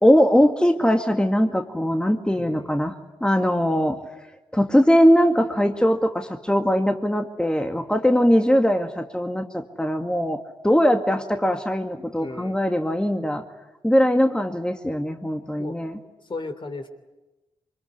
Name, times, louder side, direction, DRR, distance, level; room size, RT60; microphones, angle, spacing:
voice 1, 0.0-2.9 3.2-4.0 4.5-10.4 10.6-13.4 13.8-16.0, equal, 5° left, 5 dB, 2.1 m, -20 dB
voice 2, 2.3-2.8 12.1-12.6 15.6-15.8 16.3-16.9, left 3 dB, 45° left, 7 dB, 3.3 m, -35 dB
24.5 x 21.5 x 9.8 m, 1.1 s
supercardioid pair, 40°, 12 cm